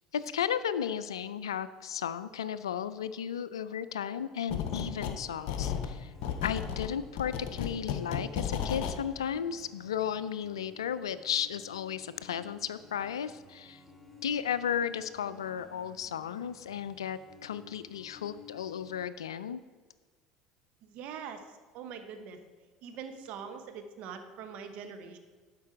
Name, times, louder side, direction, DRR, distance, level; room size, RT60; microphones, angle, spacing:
voice 1, 0.1-6.1 6.4-13.8 14.2-19.6, left 8 dB, 80° left, 14 dB, 0.3 m, -34 dB
sound 1, 4.5-5.2 5.5-9.0, left 8 dB, 60° left, 0.7 m, -34 dB
sound 2, 4.5-19.1, left 4 dB, ahead, 1.7 m, -56 dB
voice 2, 20.8-22.4 22.8-25.2, right 6 dB, 60° right, 7 dB, 1.0 m, -43 dB
12.0 x 5.3 x 4.6 m, 1.4 s
hypercardioid pair, 65°, 3 cm